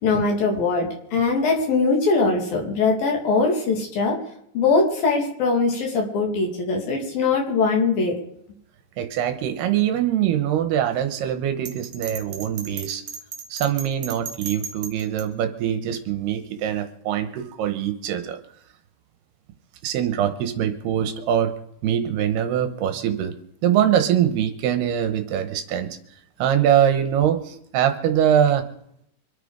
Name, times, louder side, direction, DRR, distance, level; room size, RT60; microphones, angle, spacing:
voice 1, 0.0-4.2 4.5-8.2, left 4 dB, 55° left, 0 dB, 4.4 m, -21 dB
voice 2, 9.0-13.0 13.5-18.4 19.8-21.6 21.8-23.3 23.6-26.0 26.4-28.7, right 10 dB, 70° right, 8 dB, 2.9 m, -23 dB
Bell, 11.7-15.3, right 6 dB, 55° right, 2.5 m, -35 dB
25.5 x 9.3 x 5.1 m, 0.73 s
omnidirectional pair, 5.3 m